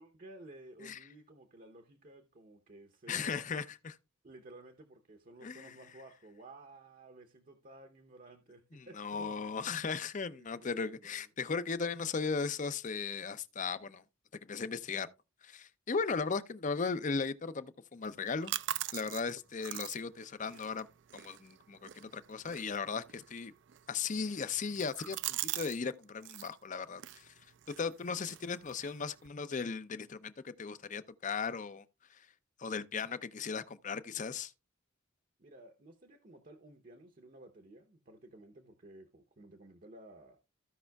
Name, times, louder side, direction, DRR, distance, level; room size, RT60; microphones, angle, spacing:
voice 1, 0.0-3.6 4.2-9.8 10.3-11.3 35.4-40.4, right 2 dB, 40° right, 0.8 m, -54 dB
voice 2, 3.1-4.0 5.4-5.8 8.7-14.0 14.4-15.1 15.4-18.5 18.9-20.9 21.1-23.5 23.9-27.3 27.7-31.8 32.1-32.3 32.6-34.5, left 5 dB, 35° left, 0.5 m, -37 dB
sound 1, 18.0-25.8 26.0-26.5 26.9-29.3, right 14 dB, 60° right, 0.4 m, -43 dB
15.5 x 5.5 x 2.3 m
head